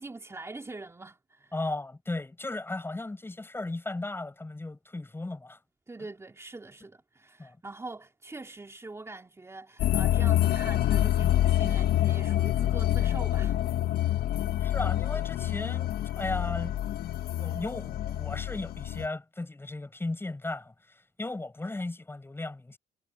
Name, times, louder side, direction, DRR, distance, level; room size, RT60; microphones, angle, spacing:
voice 1, 0.0-1.5 5.9-13.6, right 3 dB, 15° right, 4.0 m, -43 dB
voice 2, 1.5-5.6 7.4-7.6 14.6-16.8 17.4-22.8, left 2 dB, 15° left, 7.5 m, -36 dB
sound 1, 9.8-19.1, left 12 dB, 65° left, 1.6 m, -27 dB
cardioid pair, 110°, 17 cm